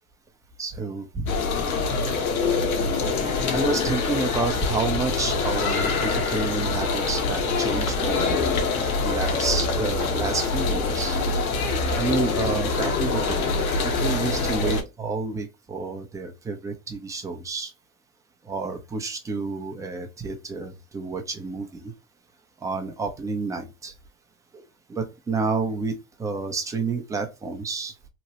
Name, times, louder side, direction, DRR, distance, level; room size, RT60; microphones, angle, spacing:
voice 1, 0.6-1.3 3.0-8.4 9.0-11.2 11.9-17.7 18.5-21.9 22.6-23.9 24.5-24.6 24.9-27.9, right 4 dB, 10° right, 0.4 m, -30 dB
sound 1, 1.3-14.8, left 4 dB, 75° left, 1.0 m, -24 dB
3.0 x 2.2 x 2.8 m
hypercardioid pair, 100°, 43 cm